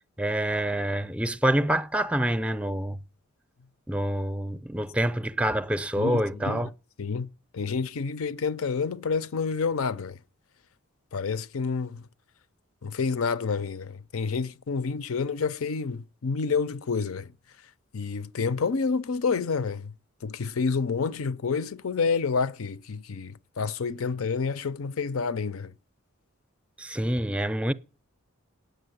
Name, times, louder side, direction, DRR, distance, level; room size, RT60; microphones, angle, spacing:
voice 1, 0.2-3.0 3.9-6.7 26.8-27.7, right 1 dB, 5° right, 0.5 m, -27 dB
voice 2, 5.9-6.7 7.0-7.3 7.5-10.2 11.1-12.1 12.8-17.3 17.9-19.9 20.2-25.7, left 5 dB, 70° left, 0.6 m, -29 dB
9.3 x 6.6 x 8.0 m
head